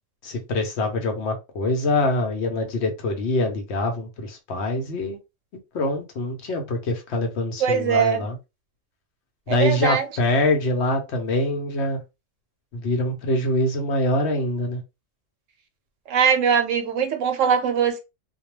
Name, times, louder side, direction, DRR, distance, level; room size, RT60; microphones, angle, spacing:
voice 1, 0.2-5.2 5.7-8.4 9.5-12.0 12.7-14.8, left 1 dB, 65° left, 0.9 m, -24 dB
voice 2, 7.6-8.3 9.5-10.1 16.1-18.0, right 7 dB, 85° right, 1.0 m, -21 dB
2.3 x 2.2 x 3.0 m
omnidirectional pair, 1.3 m